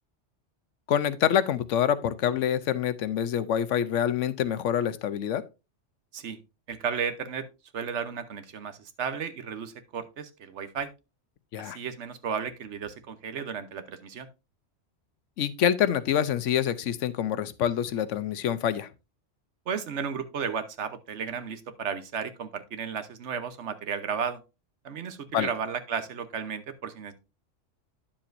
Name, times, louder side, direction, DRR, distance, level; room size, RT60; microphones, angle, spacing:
voice 1, 0.9-5.4 11.5-11.8 15.4-18.9 25.3-25.5, left 9 dB, 90° left, 1.0 m, -26 dB
voice 2, 6.7-7.5 7.7-10.9 11.6-14.3 19.7-24.4 24.8-27.1, right 6 dB, 70° right, 1.2 m, -34 dB
10.0 x 7.1 x 2.5 m
omnidirectional pair, 1.2 m